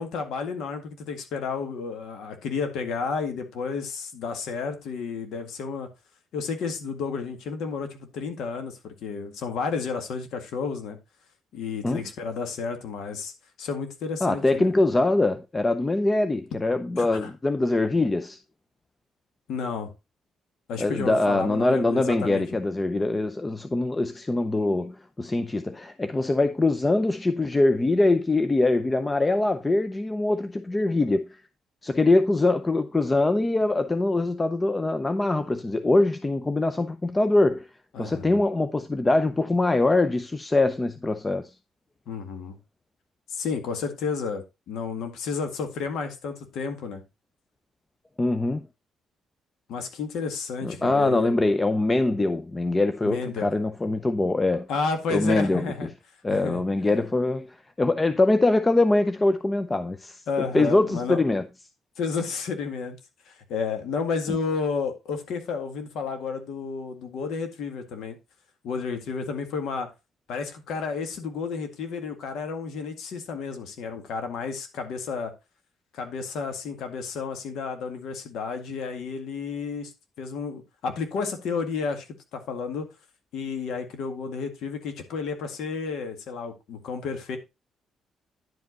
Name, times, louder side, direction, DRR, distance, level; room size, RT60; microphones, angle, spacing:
voice 1, 0.0-5.9 6.3-11.0 11.5-13.3 13.6-14.7 17.0-17.3 19.5-19.9 20.7-22.4 37.9-38.4 42.1-42.6 43.3-47.0 49.7-51.3 53.0-53.5 54.7-55.9 56.3-56.6 60.3-61.2 62.0-63.0 63.3-68.2 68.6-69.9 70.3-75.3 75.9-79.9 80.2-82.1 82.3-82.9 83.3-87.4, left 5 dB, 80° left, 1.9 m, -31 dB
voice 2, 14.2-18.4 20.8-31.4 31.8-37.7 38.0-41.5 48.2-48.6 50.6-54.7 55.1-55.7 56.2-60.2 60.5-61.5 64.3-64.4, left 2 dB, 20° left, 0.6 m, -23 dB
10.5 x 5.3 x 3.9 m
cardioid pair, 90°, 0 cm